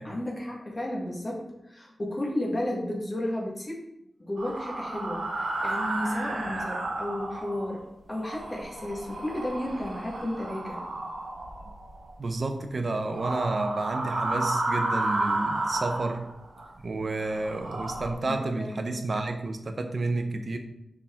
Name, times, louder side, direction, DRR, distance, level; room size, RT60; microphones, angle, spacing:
voice 1, 0.0-3.8 4.2-11.0 18.2-19.1, left 1 dB, 25° left, -3 dB, 1.5 m, -33 dB
sound 1, 4.4-7.8 8.1-12.1 13.0-16.7 17.1-18.1, right 2 dB, 85° right, 1.0 m, -32 dB
voice 2, 12.2-16.3 16.8-20.6, right 2 dB, 45° right, 6 dB, 0.7 m, -30 dB
5.7 x 4.7 x 3.6 m, 0.85 s
wide cardioid pair, 135°, 0 cm